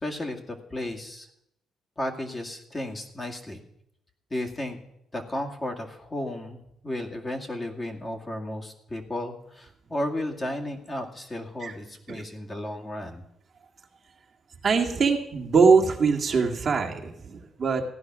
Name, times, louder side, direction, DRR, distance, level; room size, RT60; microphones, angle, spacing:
voice 1, 0.0-1.3 2.0-3.6 4.3-4.8 5.1-13.2, left 1 dB, 25° left, 0 dB, 2.3 m, -34 dB
voice 2, 14.6-17.8, right 5 dB, 45° right, 1 dB, 1.9 m, -22 dB
15.5 x 10.5 x 6.1 m, 0.80 s
cardioid pair, 90°, 0 cm